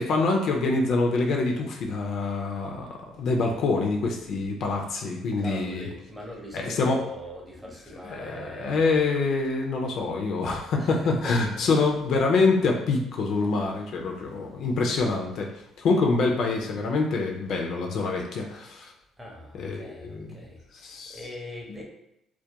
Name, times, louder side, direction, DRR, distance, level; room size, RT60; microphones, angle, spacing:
voice 1, 0.0-5.9 6.5-7.0 8.1-15.5 15.8-18.9 19.6-20.4 20.8-21.2, left 3 dB, 60° left, 1 dB, 0.4 m, -25 dB
voice 2, 5.4-9.0 10.8-11.7 15.8-15.9 19.2-21.8, left 1 dB, 5° right, -2 dB, 0.5 m, -41 dB
2.2 x 2.1 x 2.7 m, 0.82 s
cardioid pair, 140°, 0 cm